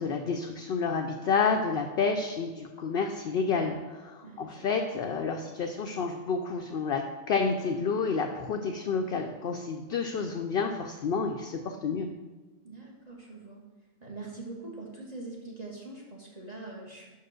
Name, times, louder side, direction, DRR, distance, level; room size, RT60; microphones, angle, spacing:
voice 1, 0.0-12.1, left 5 dB, 60° left, 3 dB, 0.6 m, -30 dB
voice 2, 4.2-4.7 12.6-13.7 14.0-17.2, right 3 dB, 35° right, -2 dB, 1.0 m, -43 dB
5.5 x 4.7 x 6.2 m, 1.3 s
omnidirectional pair, 1.4 m